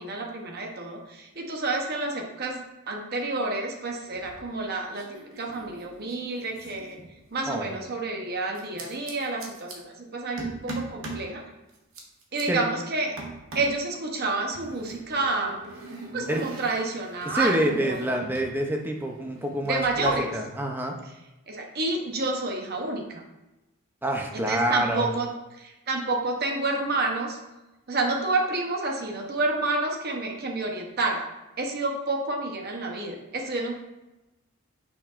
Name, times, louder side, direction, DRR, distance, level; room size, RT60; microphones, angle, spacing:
voice 1, 0.0-5.1 5.4-7.0 7.3-11.4 12.3-13.1 13.5-15.7 16.1-18.0 19.6-20.3 21.5-23.2 24.3-27.4 27.9-31.2 31.6-33.8, right 3 dB, 45° right, 1 dB, 0.9 m, -29 dB
sound 1, 4.1-4.7 4.9-7.5 8.5-9.8 10.4-11.3 11.7-12.4 13.2-13.8 14.5-18.5 18.8-20.1, right 3 dB, 60° right, 1.1 m, -41 dB
voice 2, 7.5-7.8 12.5-12.6 16.1-16.4 17.2-21.0 24.0-25.1, right 1 dB, 10° right, 2 dB, 0.6 m, -27 dB
6.9 x 5.6 x 2.5 m, 1.0 s
head